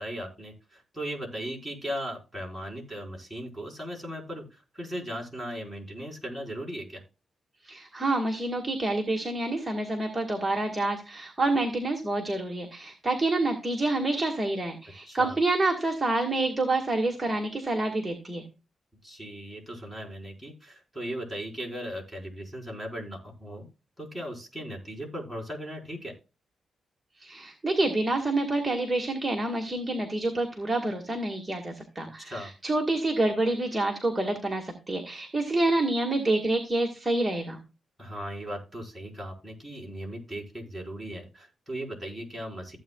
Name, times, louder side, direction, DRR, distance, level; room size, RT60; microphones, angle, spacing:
voice 1, 0.0-7.0 15.1-15.4 19.0-23.7 24.0-26.1 32.2-32.5 38.0-42.8, equal, 5° left, -1 dB, 4.9 m, -37 dB
voice 2, 7.6-18.4 27.2-37.6, right 2 dB, 10° right, 1 dB, 1.8 m, -27 dB
15.5 x 8.4 x 2.3 m, 0.32 s
wide cardioid pair, 140°, 0 cm